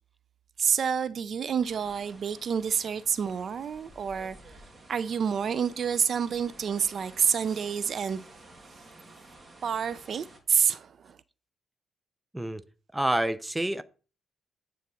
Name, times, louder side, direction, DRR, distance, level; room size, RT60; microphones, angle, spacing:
voice 1, 0.6-4.4 4.9-8.2 9.6-11.2, right 7 dB, 55° right, 0.4 m, -28 dB
sound 1, 1.6-10.4, right 2 dB, 25° right, 2.2 m, -52 dB
voice 2, 12.9-13.8, right 1 dB, 10° right, 0.6 m, -28 dB
9.4 x 4.0 x 6.3 m
cardioid pair, 90°, 0 cm